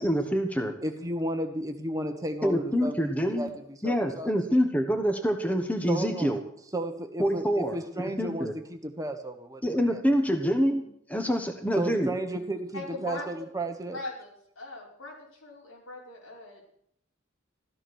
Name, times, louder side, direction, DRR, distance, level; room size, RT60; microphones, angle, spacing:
voice 1, 0.0-0.8 2.4-3.5 3.8-6.4 7.2-8.5 9.6-12.1, equal, 5° left, 4 dB, 1.3 m, -26 dB
voice 2, 0.8-3.5 3.8-4.3 5.9-6.4 6.7-10.0 11.8-14.0, right 1 dB, 15° right, 6 dB, 1.3 m, -33 dB
voice 3, 12.7-13.5 13.9-16.7, left 2 dB, 85° left, -3 dB, 5.6 m, -40 dB
14.5 x 13.5 x 6.4 m, 0.70 s
head